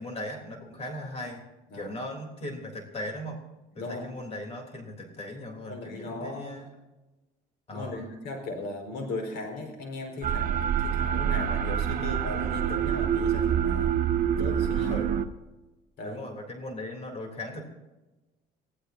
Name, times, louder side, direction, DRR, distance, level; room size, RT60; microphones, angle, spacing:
voice 1, 0.0-1.4 1.7-3.4 3.8-6.7 7.7-8.1 14.7-15.1 16.0-17.7, left 1 dB, 40° left, 2 dB, 3.5 m, -38 dB
voice 2, 3.7-4.3 5.7-6.5 7.7-13.9 14.3-15.0 16.0-16.2, left 2 dB, 75° left, 3 dB, 5.0 m, -37 dB
sound 1, 10.2-15.3, right 9 dB, 55° right, 1.1 m, -26 dB
25.5 x 16.0 x 2.8 m, 1.1 s
cardioid pair, 110°, 17 cm